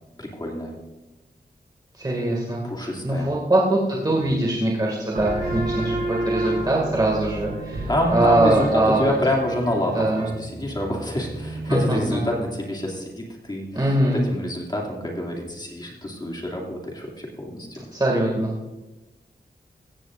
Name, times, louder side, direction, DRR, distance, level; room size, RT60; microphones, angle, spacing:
voice 1, 0.2-0.7 2.6-3.3 7.9-17.8, left 1 dB, 25° left, -1 dB, 2.5 m, -27 dB
voice 2, 2.0-2.6 3.0-9.1 9.9-10.3 11.7-12.2 13.7-14.2 17.9-18.5, right 1 dB, 25° right, -3 dB, 2.2 m, -22 dB
sound 1, 5.1-12.4, right 1 dB, 60° right, 4.9 m, -31 dB
16.0 x 15.0 x 2.5 m, 1.1 s
wide cardioid pair, 140°, 17 cm